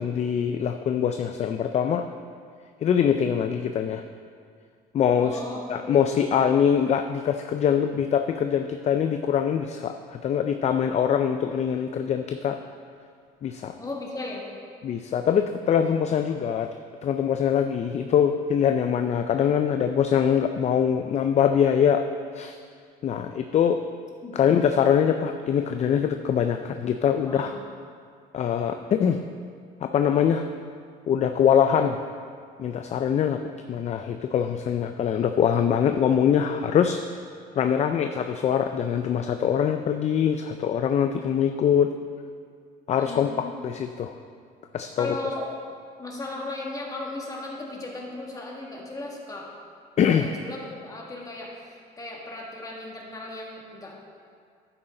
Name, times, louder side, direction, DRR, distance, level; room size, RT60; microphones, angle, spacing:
voice 1, 0.0-2.1 2.8-4.0 4.9-5.4 5.7-12.6 13.4-13.7 14.8-16.7 17.0-22.0 22.3-22.6 23.0-23.8 24.3-27.5 28.3-29.2 29.8-30.5 31.1-32.0 32.6-33.4 33.7-37.0 37.6-41.9 42.9-44.1 44.7-45.2 50.0-50.3, left 8 dB, 40° left, 7 dB, 0.4 m, -23 dB
voice 2, 5.2-6.0 13.8-14.4 24.2-24.4 27.2-27.6 43.0-43.5 45.0-45.5 46.0-49.5 50.2-54.0, left 2 dB, 20° left, -2 dB, 2.0 m, -36 dB
11.0 x 8.8 x 3.8 m, 2.2 s
cardioid pair, 110°, 17 cm